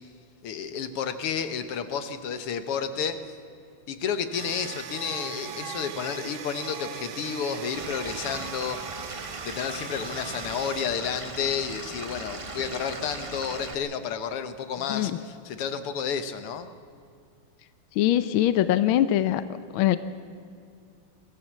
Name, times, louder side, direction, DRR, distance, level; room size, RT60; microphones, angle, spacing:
voice 1, 0.4-3.2 3.9-8.8 9.4-16.7, left 7 dB, 90° left, 10 dB, 2.1 m, -31 dB
sound 1, 4.3-10.8, right 7 dB, 70° right, 1.7 m, -39 dB
Stream / Liquid, 7.8-13.8, right 3 dB, 25° right, 0.7 m, -39 dB
voice 2, 18.0-19.4 19.7-20.0, left 12 dB, 75° left, 13 dB, 1.5 m, -22 dB
22.5 x 16.0 x 7.5 m, 2.5 s
omnidirectional pair, 2.4 m